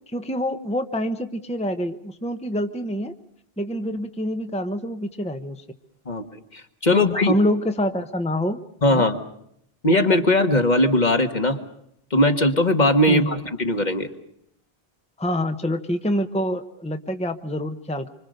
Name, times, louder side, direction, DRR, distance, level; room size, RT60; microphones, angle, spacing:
voice 1, 0.1-3.1 3.6-5.6 6.9-8.6 8.9-9.0 13.1-13.5 15.2-18.1, equal, 5° left, 8 dB, 1.0 m, -26 dB
voice 2, 6.8-7.3 8.8-9.2 9.8-11.6 12.1-14.1, left 1 dB, 45° left, 6 dB, 1.9 m, -19 dB
26.0 x 25.5 x 6.6 m, 0.72 s
omnidirectional pair, 1.0 m